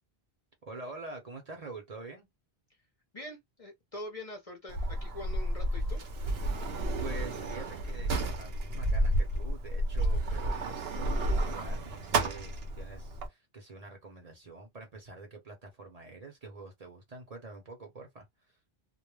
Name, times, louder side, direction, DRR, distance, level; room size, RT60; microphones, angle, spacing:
voice 1, 0.6-2.3 7.0-18.3, right 3 dB, 45° right, 0.7 m, -46 dB
voice 2, 3.1-6.0, left 1 dB, 40° left, 0.6 m, -44 dB
Sliding door, 4.7-13.3, right 1 dB, 75° right, 0.9 m, -31 dB
2.3 x 2.1 x 3.1 m
omnidirectional pair, 1.0 m